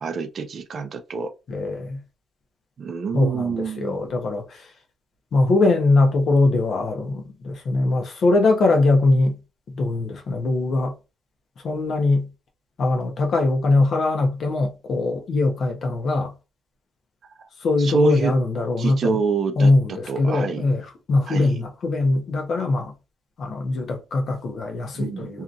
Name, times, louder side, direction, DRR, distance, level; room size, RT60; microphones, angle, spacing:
voice 1, 0.0-1.3 2.8-4.1 17.8-18.3 18.8-19.7 20.1-20.6 21.3-21.6 25.0-25.4, right 4 dB, 55° right, 0.5 m, -26 dB
voice 2, 1.5-2.0 3.1-4.7 5.3-9.4 9.7-10.9 11.6-12.3 12.8-16.3 17.6-19.2 19.6-22.9 23.4-25.4, left 2 dB, 60° left, 0.8 m, -21 dB
2.8 x 2.5 x 2.4 m
cardioid pair, 90°, 0 cm